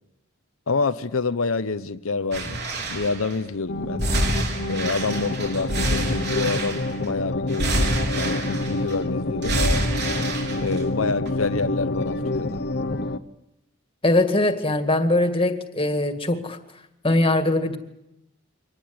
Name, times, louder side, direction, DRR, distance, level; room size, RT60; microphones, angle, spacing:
voice 1, 0.7-4.0 4.7-7.9 8.2-9.6 10.6-12.6, left 4 dB, 90° left, 0.9 m, -27 dB
sound 1, 2.3-3.3 4.0-7.0 7.5-8.9 9.4-10.8 11.3-11.4, right 1 dB, 55° right, 4.4 m, -27 dB
sound 2, 3.7-13.2, left 2 dB, 55° left, 1.0 m, -28 dB
voice 2, 14.0-16.6 17.0-17.8, left 2 dB, 25° left, 2.1 m, -21 dB
24.5 x 19.0 x 9.5 m
head